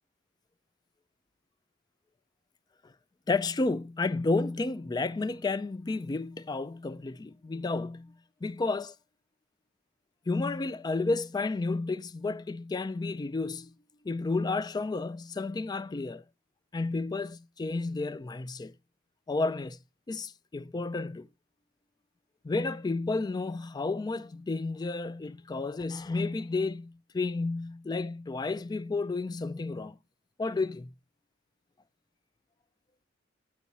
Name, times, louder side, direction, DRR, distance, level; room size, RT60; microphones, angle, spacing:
voice 1, 3.3-8.1 8.4-8.9 10.3-13.7 14.0-16.2 16.7-18.7 19.3-19.8 20.1-21.3 22.4-30.0 30.4-30.9, left 3 dB, 20° left, 0.3 m, -31 dB
8.4 x 4.6 x 4.1 m
head